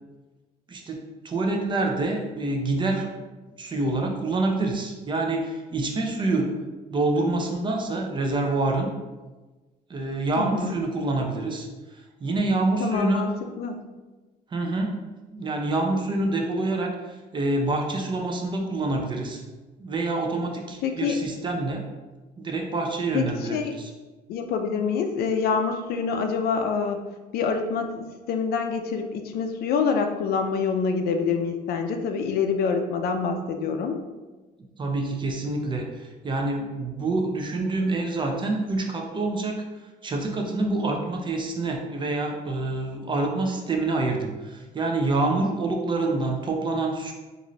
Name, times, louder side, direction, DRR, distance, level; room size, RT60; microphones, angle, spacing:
voice 1, 0.7-3.1 3.6-6.5 6.9-8.9 9.9-11.7 12.2-13.2 14.5-14.9 15.3-19.4 19.8-21.8 22.4-23.9 34.8-39.6 40.0-47.1, right 2 dB, 30° right, 2 dB, 0.6 m, -26 dB
voice 2, 10.4-10.8 12.8-13.3 13.6-13.8 20.8-21.2 23.1-23.8 24.3-27.0 27.3-34.0, left 5 dB, 65° left, 6 dB, 0.4 m, -26 dB
3.8 x 2.6 x 3.1 m, 1.2 s
cardioid pair, 110°, 17 cm